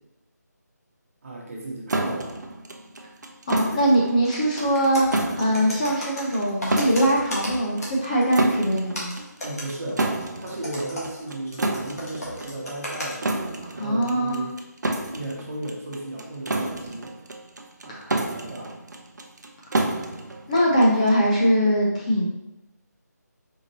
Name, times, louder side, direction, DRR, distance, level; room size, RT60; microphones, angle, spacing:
voice 1, 1.2-2.3 9.4-10.0 10.4-13.3 13.7-14.5 15.1-17.1 17.8-18.7, right 1 dB, 50° right, -3 dB, 1.2 m, -35 dB
sound 1, 1.9-21.3, right 2 dB, 75° right, 0.5 m, -30 dB
voice 2, 3.5-9.2 13.7-14.4 17.9-18.2 20.5-22.3, equal, 25° left, -4 dB, 0.5 m, -22 dB
sound 2, 4.2-8.5 8.9-13.2, equal, 60° left, 1.4 m, -36 dB
4.4 x 2.8 x 2.9 m, 0.93 s
figure-of-eight pair, 160°, 10 cm